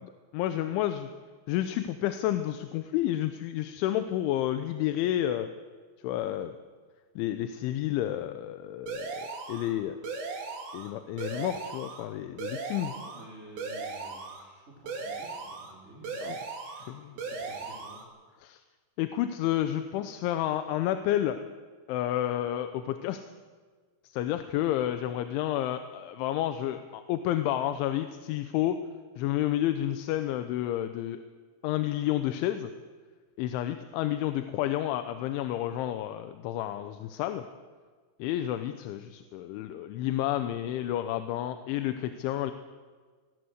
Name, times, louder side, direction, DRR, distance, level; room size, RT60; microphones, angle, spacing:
voice 1, 0.0-1.1 1.5-5.5 6.0-6.6 7.2-10.0 10.7-13.0 16.2-16.4 16.9-17.1 18.4-18.6 19.0-21.4 21.9-23.2 24.0-28.8 29.2-31.2 31.6-32.7 33.4-37.4 38.2-42.5, left 12 dB, 85° left, 9 dB, 3.3 m, -30 dB
sound 1, 8.9-9.7 10.0-10.9 11.2-12.0 12.4-13.2 13.6-14.4 14.9-15.7 16.0-16.9 17.2-18.0, right 4 dB, 65° right, 5.0 m, -37 dB
voice 2, 12.9-18.0 24.3-24.7, equal, 15° right, -1 dB, 3.5 m, -52 dB
24.5 x 19.0 x 8.1 m, 1.5 s
omnidirectional pair, 5.5 m